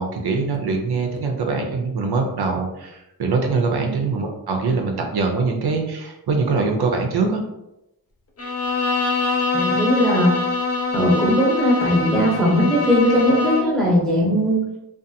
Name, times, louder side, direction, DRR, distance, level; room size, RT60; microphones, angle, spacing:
voice 1, 0.0-7.4, right 4 dB, 80° right, 2 dB, 0.5 m, -23 dB
Bowed string instrument, 8.4-13.8, left 3 dB, 40° left, 0.4 m, -24 dB
voice 2, 9.5-10.3 10.9-14.7, equal, ahead, -6 dB, 0.8 m, -19 dB
2.5 x 2.4 x 2.6 m, 0.87 s
wide cardioid pair, 105°, 38 cm